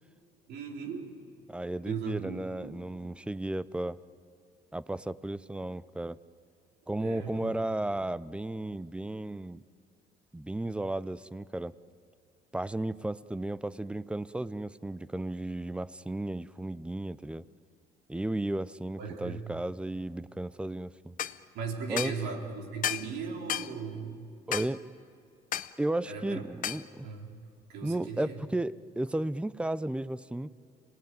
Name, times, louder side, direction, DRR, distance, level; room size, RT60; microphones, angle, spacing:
voice 1, 0.5-1.1 1.8-2.8 7.0-7.6 19.0-19.5 21.5-24.2 26.0-26.4 27.0-27.3 27.7-28.4, right 5 dB, 80° right, 0 dB, 3.8 m, -38 dB
voice 2, 1.5-4.0 4.7-6.2 6.9-9.6 10.3-11.7 12.5-17.5 18.1-21.2 21.9-22.1 24.5-24.8 25.8-27.1 27.8-30.5, right 1 dB, 5° right, 17 dB, 0.5 m, -34 dB
sound 1, 21.2-21.4 22.0-22.2 22.8-23.1 23.5-23.7 24.5-24.7 25.5-25.7 26.6-26.8, left 11 dB, 50° left, 0.7 m, -32 dB
27.0 x 19.5 x 9.4 m, 2.3 s
cardioid pair, 110°, 17 cm